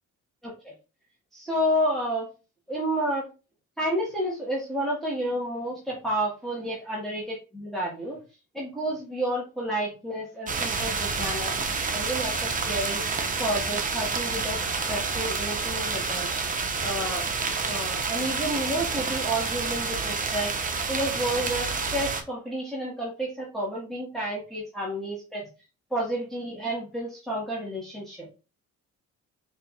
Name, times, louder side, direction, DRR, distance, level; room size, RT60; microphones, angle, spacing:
voice 1, 0.4-0.7 1.3-2.3 2.7-3.3 3.8-8.2 8.5-11.6 11.9-13.0 13.4-16.3 16.8-17.2 17.7-20.5 20.9-25.4 25.9-28.3, right 1 dB, ahead, -6 dB, 1.4 m, -30 dB
sound 1, 10.5-22.2, right 4 dB, 25° right, 0.6 m, -29 dB
4.5 x 2.8 x 2.3 m, 0.31 s
cardioid pair, 90°, 30 cm